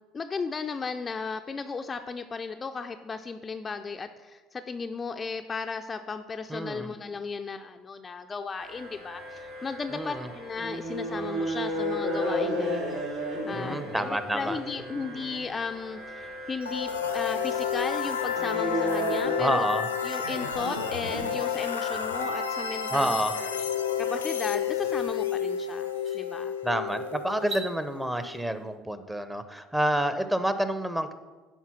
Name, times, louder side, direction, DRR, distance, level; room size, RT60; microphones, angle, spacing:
voice 1, 0.1-13.0 13.5-19.7 20.0-23.6 24.0-26.5, left 4 dB, 30° left, 6 dB, 0.4 m, -35 dB
voice 2, 6.5-6.9 9.9-10.3 13.5-14.6 19.4-19.9 22.9-23.4 26.6-31.1, right 1 dB, 10° right, 11 dB, 0.8 m, -28 dB
sound 1, 8.6-19.4, equal, 75° right, 2.6 m, -33 dB
sound 2, 16.6-28.4, left 7 dB, 90° left, 0.6 m, -30 dB
sound 3, 22.7-22.8 23.2-23.7 25.3-25.4 25.9-26.2 27.3-27.7, right 4 dB, 50° right, 1.5 m, -40 dB
10.0 x 3.9 x 6.0 m, 1.3 s
hypercardioid pair, 65°, 0 cm